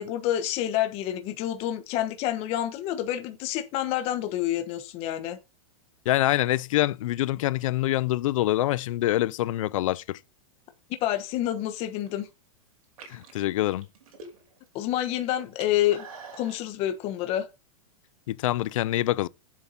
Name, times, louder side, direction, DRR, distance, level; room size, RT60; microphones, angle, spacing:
voice 1, 0.0-5.4 11.0-12.3 14.7-16.1 16.4-17.5, left 12 dB, 35° left, 1.3 m, -28 dB
voice 2, 6.1-10.2 13.1-13.9 18.3-19.3, left 15 dB, 70° left, 0.5 m, -25 dB
sound 1, 11.8-12.3 12.8-14.7 15.0-16.6, right 4 dB, 90° right, 4.7 m, -46 dB
7.4 x 7.3 x 4.1 m
supercardioid pair, 150°, 18 cm